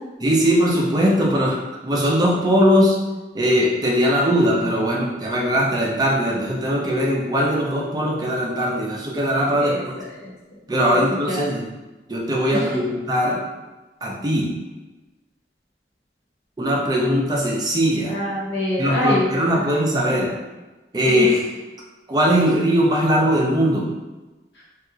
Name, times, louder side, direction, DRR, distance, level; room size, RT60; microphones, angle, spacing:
voice 1, 0.2-3.0 3.3-9.7 10.7-11.7 12.1-13.4 14.0-14.5 16.6-18.1 18.8-20.3 20.9-21.4 22.1-23.9, equal, 20° right, -3 dB, 0.4 m, -20 dB
voice 2, 9.5-10.3 10.9-11.4 12.5-12.8 18.0-19.6 21.0-21.2, left 1 dB, 75° left, -6 dB, 1.2 m, -26 dB
2.7 x 2.3 x 3.7 m, 1.1 s
head